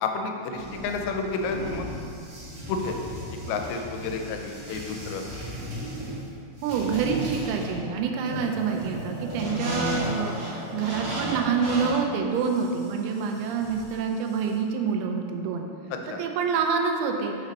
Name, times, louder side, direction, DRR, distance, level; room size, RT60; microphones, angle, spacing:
voice 1, 0.0-1.9 2.7-3.0 3.5-5.2 15.9-16.2, left 4 dB, 85° left, 4 dB, 2.5 m, -30 dB
sound 1, 0.5-14.6, equal, 55° right, 1.9 m, -35 dB
voice 2, 6.6-15.7 16.2-17.4, right 6 dB, 85° right, 3 dB, 2.6 m, -27 dB
6.1 x 5.3 x 4.0 m, 2.4 s
omnidirectional pair, 4.4 m